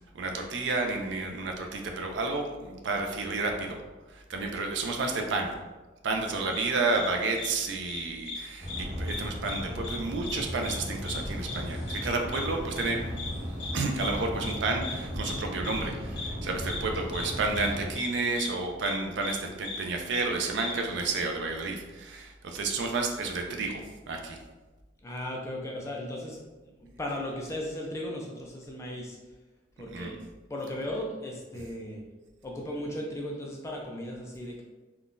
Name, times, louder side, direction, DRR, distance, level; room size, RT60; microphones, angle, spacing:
voice 1, 0.1-3.8 4.1-5.5 6.0-13.0 13.7-24.4 29.9-30.1, right 3 dB, 65° right, 3 dB, 0.4 m, -31 dB
sound 1, 6.5-6.7 6.9-7.1 7.3-7.5 7.9-8.4 8.7-8.8 9.1-9.6 9.8-10.0 10.2-10.4 10.6-10.8 11.1-11.2 11.5-11.6 11.9-12.0 12.3-12.4 12.8-12.9 13.2-13.3 13.6-13.7 14.0-14.1 14.4-14.5 14.8-14.9 15.2-15.4 15.6-15.8 16.2-16.3 16.7-16.8 17.1-17.3 17.5-17.7 17.9-18.1 18.4-18.5 18.8-18.9 19.2-19.3 19.6-19.8 20.1-20.2 20.6-20.7, left 4 dB, 60° left, 0.6 m, -37 dB
sound 2, 8.6-17.9, equal, 35° right, 1.0 m, -36 dB
voice 2, 25.0-26.4 26.8-29.2 29.8-30.2 30.5-32.0 32.4-34.6, left 1 dB, 15° left, -1 dB, 0.3 m, -36 dB
3.6 x 2.3 x 2.5 m, 1.2 s
head